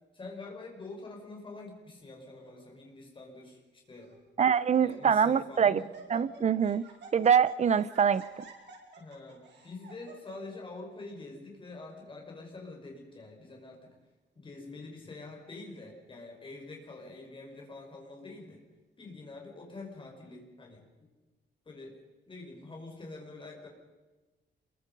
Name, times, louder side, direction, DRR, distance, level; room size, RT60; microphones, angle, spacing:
voice 1, 0.1-4.2 4.8-5.9 9.0-13.9 14.4-18.6 19.0-21.1 21.7-21.9 22.3-23.7, left 3 dB, 25° left, 5.6 m, -46 dB
Laughter, 2.2-2.6 3.4-3.5 4.0-4.2 4.5-5.3 5.5-10.6, right 3 dB, 70° right, 5.3 m, -51 dB
voice 2, 4.4-5.8 6.1-6.8 7.1-8.2, right 7 dB, 40° right, 0.7 m, -24 dB
28.5 x 22.5 x 5.4 m
wide cardioid pair, 180°, 19 cm